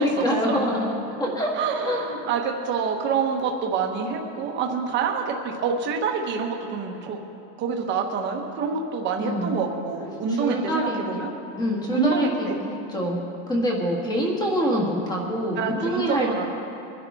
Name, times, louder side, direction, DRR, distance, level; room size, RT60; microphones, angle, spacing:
voice 1, 0.0-1.5 1.8-2.0 9.2-9.5 10.3-11.2 11.6-13.2 13.5-16.5, equal, 10° left, -1 dB, 1.4 m, -25 dB
voice 2, 1.5-7.2 7.6-11.3 11.9-12.5 15.6-16.5, right 5 dB, 25° right, 2 dB, 1.0 m, -27 dB
23.0 x 11.0 x 3.5 m, 2.9 s
supercardioid pair, 175°, 47 cm